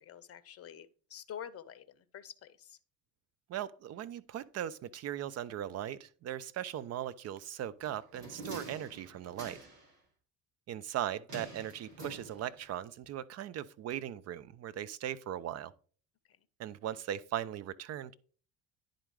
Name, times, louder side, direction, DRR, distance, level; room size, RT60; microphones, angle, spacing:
voice 1, 0.0-2.8, left 9 dB, 30° left, 0.7 m, -48 dB
voice 2, 3.5-9.6 10.7-15.7 16.6-18.1, right 11 dB, 35° right, 0.5 m, -39 dB
sound 1, 7.8-9.9 11.3-12.7 13.0-13.1, right 2 dB, 80° right, 2.1 m, -47 dB
10.0 x 3.8 x 4.8 m
figure-of-eight pair, 60°, 46 cm